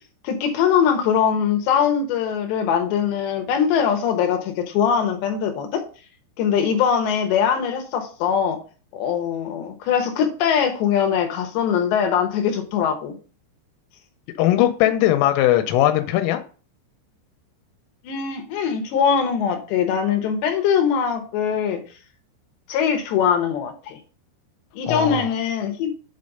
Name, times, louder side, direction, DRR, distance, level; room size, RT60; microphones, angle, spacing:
voice 1, 0.2-5.8 6.4-8.6 8.9-13.2 18.0-21.8 22.7-24.0 24.8-25.9, left 7 dB, 70° left, 5 dB, 3.0 m, -22 dB
voice 2, 14.4-16.4 24.9-25.3, left 13 dB, 90° left, 8 dB, 3.3 m, -19 dB
7.9 x 4.2 x 5.3 m, 0.38 s
omnidirectional pair, 5.7 m